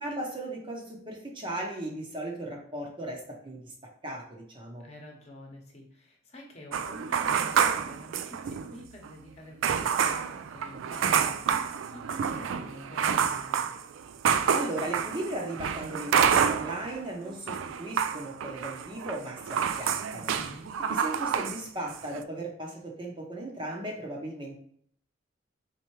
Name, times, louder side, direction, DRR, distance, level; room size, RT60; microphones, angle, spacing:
voice 1, 0.0-3.7 4.0-4.8 14.5-20.3 20.9-24.6, right 1 dB, 25° right, 0 dB, 0.7 m, -37 dB
voice 2, 4.8-13.7 20.3-20.7, left 1 dB, 35° left, 0 dB, 1.0 m, -48 dB
sound 1, 6.7-8.8 9.0-9.1 9.6-17.0 17.3-21.6 21.9-22.2, right 7 dB, 90° right, 0.3 m, -28 dB
4.4 x 3.5 x 3.1 m, 0.63 s
head